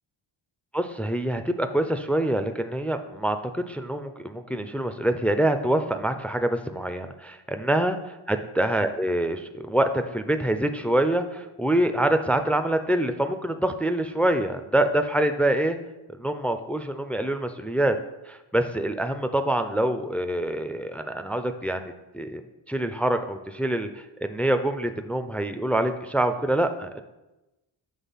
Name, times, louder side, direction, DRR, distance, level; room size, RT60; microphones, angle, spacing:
voice 1, 0.7-15.8 16.2-18.0 18.3-27.0, right 1 dB, 5° left, 8 dB, 0.4 m, -25 dB
7.4 x 3.3 x 5.6 m, 1.0 s
cardioid pair, 60°, 49 cm